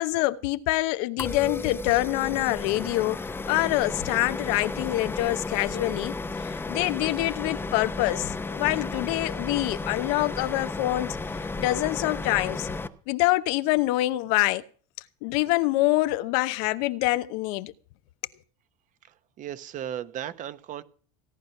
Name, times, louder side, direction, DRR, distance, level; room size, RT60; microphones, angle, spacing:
voice 1, 0.0-3.2 3.5-11.2 11.6-12.7 13.1-14.6 15.2-17.7, left 18 dB, 75° left, 0.9 m, -25 dB
sound 1, 1.2-12.9, left 3 dB, 10° left, 0.7 m, -33 dB
voice 2, 19.0-20.8, right 10 dB, 40° right, 1.0 m, -36 dB
17.0 x 10.5 x 5.8 m
cardioid pair, 145°, 20 cm